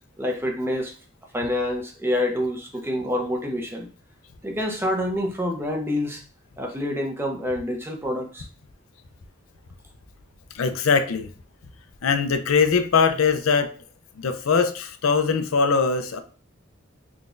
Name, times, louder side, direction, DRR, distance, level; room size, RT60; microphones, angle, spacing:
voice 1, 0.2-0.9 1.3-3.9 4.4-6.2 6.6-8.5, left 1 dB, 10° right, 1 dB, 0.6 m, -27 dB
voice 2, 10.5-11.3 12.0-13.7 14.2-16.2, left 5 dB, 90° left, 8 dB, 0.5 m, -21 dB
3.8 x 3.4 x 2.5 m, 0.40 s
head